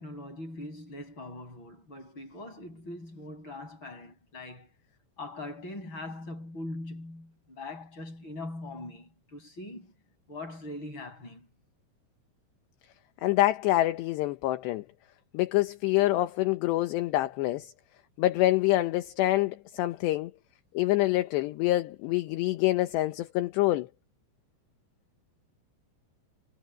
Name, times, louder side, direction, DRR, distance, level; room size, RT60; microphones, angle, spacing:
voice 1, 0.0-4.7 5.2-9.9 10.3-11.5, left 2 dB, 25° left, 7.9 m, -41 dB
voice 2, 13.2-14.8 15.3-17.7 18.2-20.3 20.7-23.9, left 16 dB, 75° left, 3.1 m, -26 dB
omnidirectional pair, 5.3 m